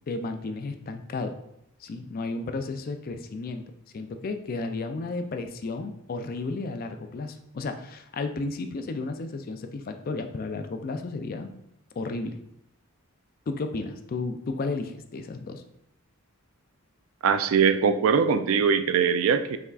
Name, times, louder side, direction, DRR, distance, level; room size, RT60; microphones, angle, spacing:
voice 1, 0.0-1.3 1.8-3.6 3.9-11.5 12.0-12.4 13.5-15.6, left 3 dB, 40° left, 7 dB, 0.3 m, -33 dB
voice 2, 17.2-19.6, right 6 dB, 65° right, 10 dB, 0.3 m, -22 dB
5.5 x 3.6 x 2.3 m, 0.79 s
head